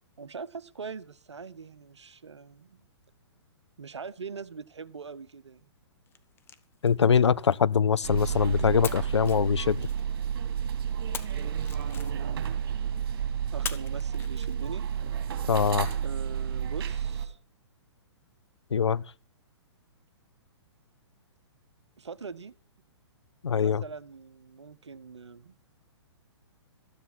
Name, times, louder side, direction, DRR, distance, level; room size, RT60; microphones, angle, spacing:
voice 1, 0.2-2.9 3.8-5.6 11.7-12.5 13.5-14.8 15.9-17.4 22.0-22.5 23.5-25.6, right 5 dB, 80° right, 0.9 m, -42 dB
sound 1, 6.1-8.3 8.8-10.4 11.1-12.5 13.6-15.0, left 7 dB, 15° left, 0.9 m, -43 dB
voice 2, 6.8-9.9 15.5-15.9 18.7-19.0 23.4-23.8, left 6 dB, 75° left, 0.6 m, -23 dB
sound 2, 8.0-17.3, right 8 dB, 50° right, 2.9 m, -31 dB
14.0 x 10.0 x 6.0 m
figure-of-eight pair, 120°, 15 cm